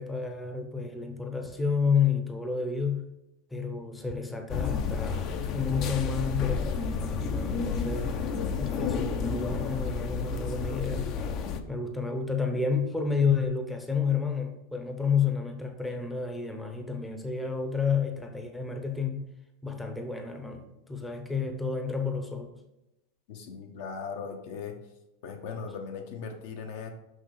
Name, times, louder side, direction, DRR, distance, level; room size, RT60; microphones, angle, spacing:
voice 1, 0.0-3.1 3.5-8.2 8.6-11.1 11.7-19.3 19.6-22.5, left 5 dB, 10° left, 4 dB, 0.7 m, -30 dB
sound 1, 4.5-11.6, left 5 dB, 40° left, 0.6 m, -31 dB
voice 2, 23.3-24.7 25.2-26.9, left 5 dB, 65° left, 4 dB, 1.1 m, -38 dB
6.3 x 5.6 x 3.9 m, 0.92 s
supercardioid pair, 140°, 0 cm